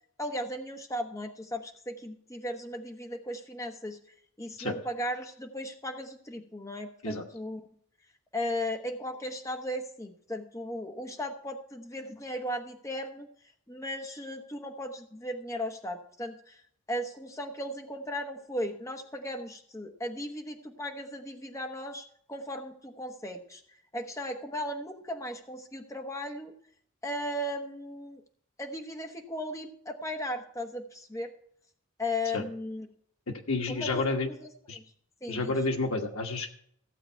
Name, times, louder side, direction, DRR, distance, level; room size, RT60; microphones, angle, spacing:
voice 1, 0.2-4.0 4.4-7.7 8.3-13.3 13.7-16.6 16.9-23.6 23.9-26.5 27.0-28.2 28.6-31.3 32.0-32.9 33.7-34.0 34.3-34.4 34.7-34.8 35.2-35.5, left 1 dB, 15° left, 4 dB, 1.0 m, -36 dB
voice 2, 33.3-34.3 34.7-34.8 35.3-36.5, left 3 dB, 85° left, 3 dB, 1.3 m, -30 dB
15.0 x 7.9 x 4.5 m, 0.65 s
head